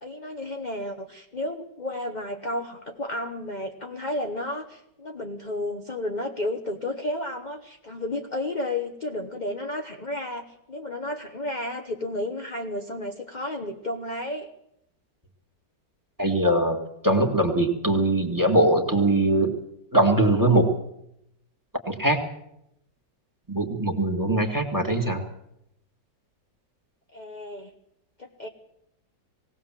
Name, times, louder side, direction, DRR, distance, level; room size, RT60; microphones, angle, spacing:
voice 1, 0.0-14.5 27.1-27.7 28.2-28.5, left 1 dB, 30° left, 4 dB, 1.0 m, -32 dB
voice 2, 16.2-16.8 17.0-19.5 19.9-20.7 21.9-22.2 23.5-25.2, right 1 dB, 10° right, 4 dB, 2.0 m, -21 dB
20.0 x 17.5 x 7.5 m, 0.79 s
omnidirectional pair, 2.0 m